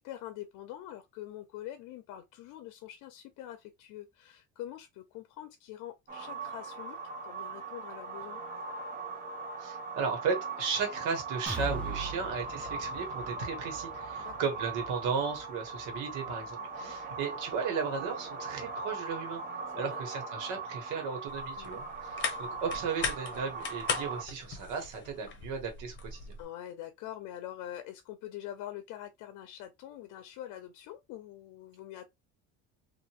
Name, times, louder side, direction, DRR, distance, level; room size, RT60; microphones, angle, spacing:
voice 1, 0.0-7.0 7.2-8.4 11.9-12.2 14.2-14.3 16.6-17.0 19.7-20.0 21.6-21.8 25.3-25.4 26.4-32.1, left 12 dB, 80° left, 0.6 m, -45 dB
sound 1, 6.1-24.2, right 4 dB, 30° right, 0.9 m, -40 dB
voice 2, 9.6-19.4 19.8-26.3, right 5 dB, 80° right, 1.2 m, -35 dB
sound 2, 11.5-19.2 19.6-19.8 20.2-20.3, equal, 5° left, 0.6 m, -44 dB
sound 3, 21.3-26.5, left 5 dB, 40° left, 0.9 m, -38 dB
2.8 x 2.5 x 2.8 m
cardioid pair, 130°, 30 cm